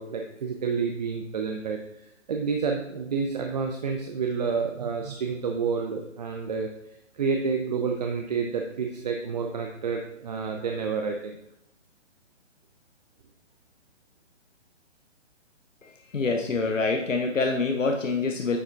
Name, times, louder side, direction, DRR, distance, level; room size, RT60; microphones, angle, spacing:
voice 1, 0.0-1.8 2.3-6.7 7.1-11.4 16.4-16.9, right 5 dB, 35° right, 3 dB, 0.5 m, -29 dB
voice 2, 15.8-18.6, left 3 dB, 90° left, 2 dB, 0.8 m, -26 dB
9.6 x 5.1 x 2.4 m, 0.77 s
figure-of-eight pair, 135°, 37 cm